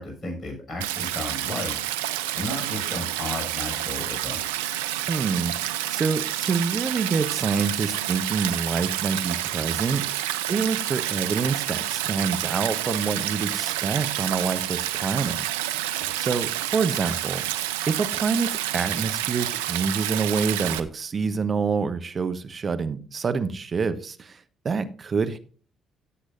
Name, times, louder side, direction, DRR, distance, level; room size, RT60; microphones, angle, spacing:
voice 1, 0.0-1.8 2.3-4.6 10.5-10.7 16.0-16.1, left 2 dB, 45° left, 6.4 m, -34 dB
Stream, 0.8-20.8, right 13 dB, 85° right, 0.5 m, -29 dB
voice 2, 5.1-10.0 10.5-15.4 16.1-17.4 17.9-24.4 24.6-25.4, right 5 dB, 45° right, 1.0 m, -27 dB
17.0 x 8.0 x 2.6 m
hypercardioid pair, 45°, 0 cm